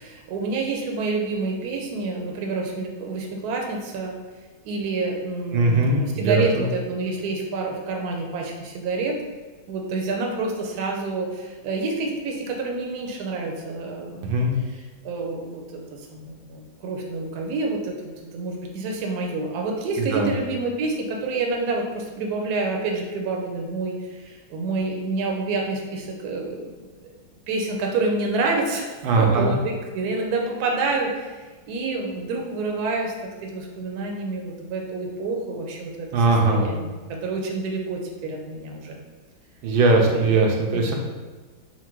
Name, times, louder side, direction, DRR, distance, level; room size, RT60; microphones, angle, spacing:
voice 1, 0.0-4.2 4.6-9.2 9.7-18.0 18.3-26.7 27.0-27.1 27.5-33.1 33.4-39.0 40.0-40.4 40.7-40.9, right 3 dB, 65° right, 1 dB, 1.0 m, -28 dB
voice 2, 5.5-6.7 14.2-14.5 20.0-20.3 29.0-29.5 36.1-36.7 39.6-40.9, right 3 dB, 85° right, 1 dB, 1.4 m, -20 dB
4.4 x 2.2 x 4.4 m, 1.3 s
omnidirectional pair, 2.1 m